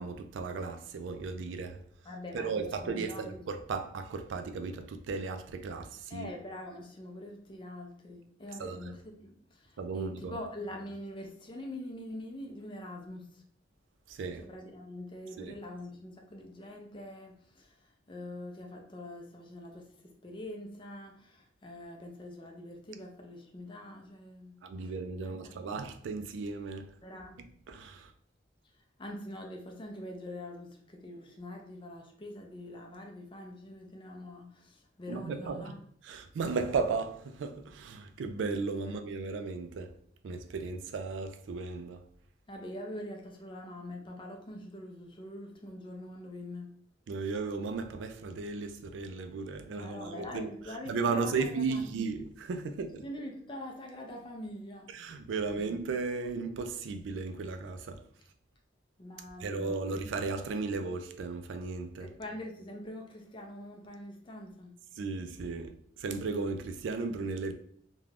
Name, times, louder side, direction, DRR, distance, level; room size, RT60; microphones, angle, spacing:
voice 1, 0.0-1.8 2.3-6.3 8.6-8.9 9.8-10.4 14.1-14.4 15.4-15.5 24.6-26.9 27.7-28.1 35.1-35.7 36.0-39.9 40.2-42.0 47.1-50.5 50.9-53.0 54.9-58.0 59.4-62.1 65.0-67.5, right 4 dB, 90° right, 0.3 m, -35 dB
voice 2, 2.0-3.4 6.1-13.4 14.4-24.9 25.2-25.6 27.0-27.5 29.0-35.8 38.8-39.0 42.5-46.7 49.8-51.9 53.0-54.9 59.0-60.0 62.0-64.8, left 1 dB, 25° left, 0.4 m, -44 dB
2.4 x 2.2 x 3.2 m
head